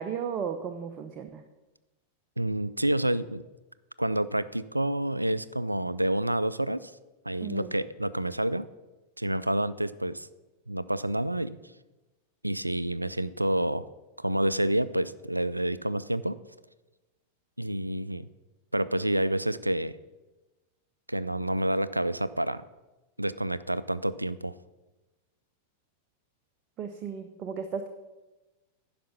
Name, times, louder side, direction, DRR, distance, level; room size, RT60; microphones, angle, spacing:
voice 1, 0.0-1.4 7.4-7.7 26.8-27.9, right 7 dB, 35° right, 7 dB, 0.6 m, -35 dB
voice 2, 2.4-3.4 4.0-6.9 7.3-8.7 9.2-10.3 10.7-11.6 12.4-13.8 14.2-16.4 17.6-18.3 18.7-19.9 21.1-22.6 23.2-24.6, right 1 dB, 85° right, 16 dB, 0.3 m, -28 dB
10.0 x 5.8 x 6.9 m, 1.1 s
figure-of-eight pair, 90°, 0 cm